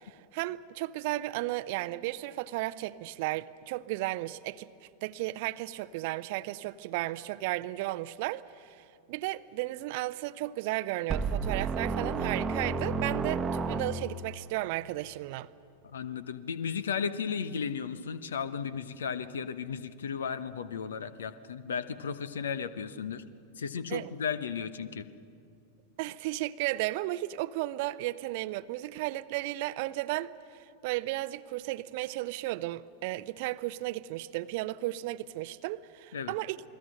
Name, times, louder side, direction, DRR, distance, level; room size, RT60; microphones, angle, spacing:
voice 1, 0.0-4.7 5.0-15.5 23.9-24.1 26.0-36.6, right 17 dB, 50° right, 0.6 m, -34 dB
sound 1, 11.1-14.4, right 4 dB, 20° right, 1.0 m, -31 dB
voice 2, 15.8-23.2 23.6-25.1 36.1-36.4, left 6 dB, 65° left, 1.0 m, -35 dB
28.5 x 21.0 x 6.4 m
figure-of-eight pair, 90°, 0 cm